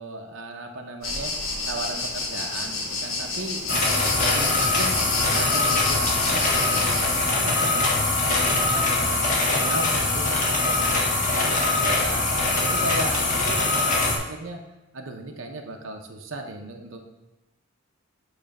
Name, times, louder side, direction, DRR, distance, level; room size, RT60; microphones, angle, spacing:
voice 1, 0.0-1.3 1.7-5.0 5.3-12.2 12.6-14.6 14.9-17.0, right 2 dB, 70° right, 3 dB, 0.8 m, -36 dB
sound 1, 1.0-7.2, left 3 dB, 80° left, 1.4 m, -30 dB
sound 2, 3.7-14.2, left 2 dB, 40° left, 1.5 m, -22 dB
8.8 x 3.3 x 5.3 m, 1.0 s
head